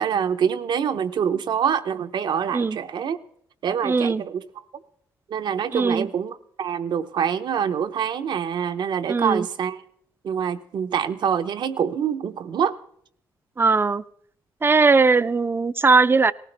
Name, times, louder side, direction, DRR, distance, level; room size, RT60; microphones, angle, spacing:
voice 1, 0.0-3.2 3.6-4.4 5.3-9.8 10.2-12.8, right 8 dB, 70° right, 10 dB, 0.7 m, -25 dB
voice 2, 3.8-4.2 5.7-6.1 9.1-9.5 13.6-14.0 14.6-16.3, right 4 dB, 30° right, 16 dB, 0.4 m, -19 dB
18.5 x 15.5 x 3.3 m, 0.68 s
cardioid pair, 65°, 8 cm